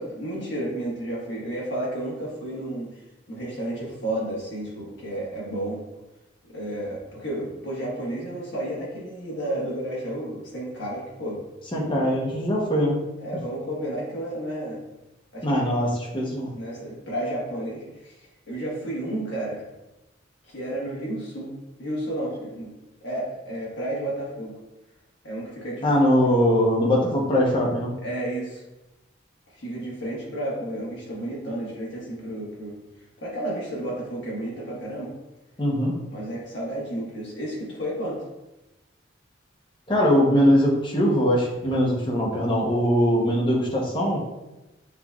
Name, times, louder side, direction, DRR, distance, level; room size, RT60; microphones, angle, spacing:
voice 1, 0.0-2.9 3.3-5.8 6.5-11.4 11.9-12.1 13.2-14.8 15.3-15.4 16.5-18.1 18.5-19.6 20.5-21.5 21.8-22.7 23.0-24.5 25.2-26.1 28.0-28.6 29.6-32.8 33.2-35.1 36.1-38.2, right 1 dB, 65° left, -5 dB, 1.5 m, -32 dB
voice 2, 11.7-13.0 15.4-16.5 25.8-27.9 35.6-35.9 39.9-44.2, equal, 25° left, -2 dB, 0.8 m, -21 dB
5.8 x 3.0 x 2.4 m, 1.0 s
head